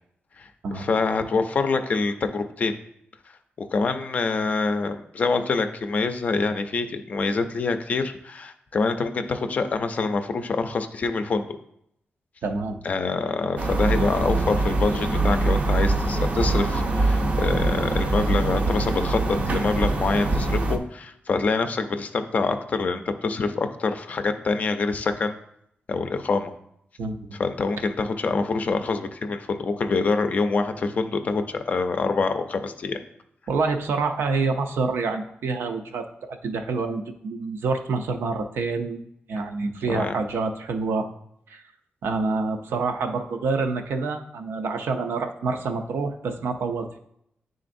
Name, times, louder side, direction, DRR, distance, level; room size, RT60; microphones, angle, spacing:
voice 1, 0.4-2.8 3.7-11.6 12.8-25.4 25.9-26.5 27.4-33.0 39.9-40.2, left 4 dB, 40° left, 7 dB, 0.5 m, -25 dB
voice 2, 12.4-12.8 27.0-27.2 33.5-39.0 39.3-41.1 41.5-41.6 42.0-47.0, right 4 dB, 80° right, 5 dB, 0.6 m, -27 dB
sound 1, 13.6-20.8, right 2 dB, 35° right, 0.5 m, -23 dB
9.9 x 3.8 x 2.6 m, 0.74 s
wide cardioid pair, 175°, 4 cm